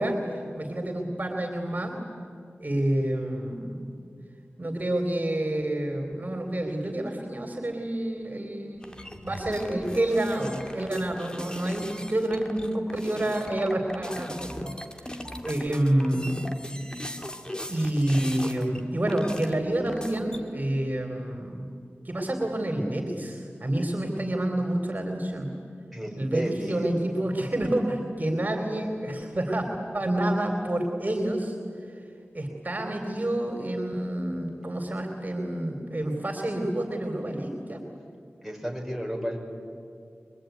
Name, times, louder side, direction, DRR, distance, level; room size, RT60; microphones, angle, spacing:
voice 1, 0.0-2.0 2.6-3.9 4.6-8.9 9.2-14.7 15.0-15.1 15.4-16.3 17.7-21.7 22.0-25.5 26.2-31.6 32.3-37.8, right 1 dB, 40° right, 3 dB, 3.6 m, -28 dB
sound 1, 8.8-18.8 19.1-20.4, left 1 dB, 20° left, 2.3 m, -39 dB
voice 2, 25.9-26.9 38.4-39.4, equal, ahead, 0 dB, 5.9 m, -33 dB
24.5 x 23.0 x 9.3 m, 2.4 s
cardioid pair, 40°, 4 cm